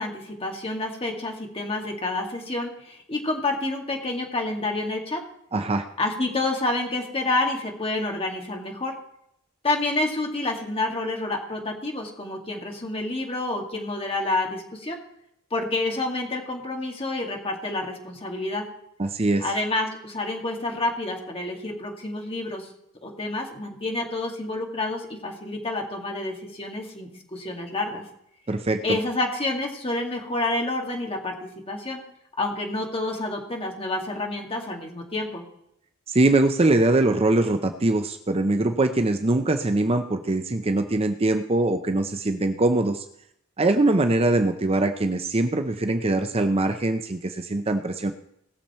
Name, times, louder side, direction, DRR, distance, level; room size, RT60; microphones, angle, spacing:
voice 1, 0.0-5.2 6.0-9.0 9.6-15.0 15.5-18.7 19.4-22.7 23.0-28.0 28.8-32.0 32.4-35.4, left 2 dB, 25° left, 1 dB, 2.2 m, -28 dB
voice 2, 5.5-5.8 19.0-19.4 28.5-28.8 36.1-43.0 43.6-48.1, right 2 dB, 30° right, 7 dB, 0.6 m, -22 dB
19.5 x 7.1 x 4.3 m, 0.75 s
head